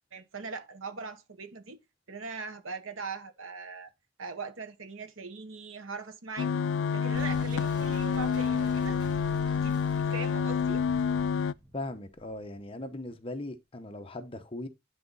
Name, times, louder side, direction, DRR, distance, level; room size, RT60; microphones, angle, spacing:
voice 1, 0.1-1.8 2.1-3.9 4.2-6.5 6.9-9.0 9.5-9.8 10.1-10.8, right 4 dB, 90° right, 1.2 m, -40 dB
sound 1, 6.4-11.5, left 6 dB, 70° left, 0.3 m, -28 dB
Boom, 7.1-12.7, equal, 20° right, 2.4 m, -47 dB
voice 2, 11.7-14.7, left 1 dB, 30° left, 0.9 m, -39 dB
10.5 x 4.0 x 4.0 m
head